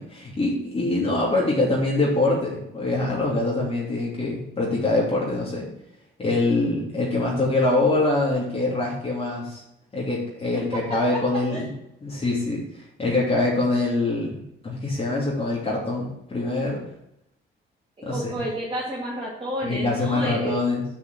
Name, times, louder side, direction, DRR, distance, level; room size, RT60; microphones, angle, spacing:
voice 1, 0.0-5.7 6.2-9.6 9.9-11.7 12.0-16.8 18.0-18.4 19.6-20.8, left 2 dB, 30° left, -5 dB, 2.9 m, -24 dB
voice 2, 18.1-20.6, equal, 30° right, -7 dB, 2.7 m, -30 dB
6.7 x 5.9 x 6.2 m, 0.80 s
cardioid pair, 90°, 20 cm